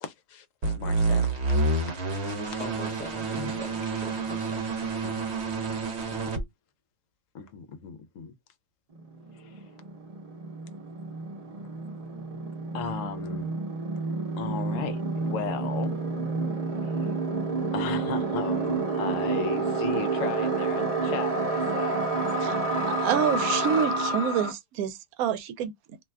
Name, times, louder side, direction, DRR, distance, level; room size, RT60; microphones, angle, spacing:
voice 1, 0.0-1.3 2.1-2.6 3.4-3.5 5.0-5.2 7.3-8.3 9.3-9.6 12.7-13.5 14.4-16.1 16.8-17.1 17.7-22.9, left 7 dB, 70° left, 0.9 m, -36 dB
sound 1, 0.6-6.4, right 3 dB, 55° right, 1.0 m, -28 dB
voice 2, 2.6-4.6, equal, 10° left, 0.5 m, -41 dB
sound 2, 9.0-9.1 9.3-24.5, right 3 dB, 30° right, 0.8 m, -29 dB
voice 3, 23.0-26.0, right 8 dB, 90° right, 1.0 m, -27 dB
2.6 x 2.2 x 3.3 m
omnidirectional pair, 1.5 m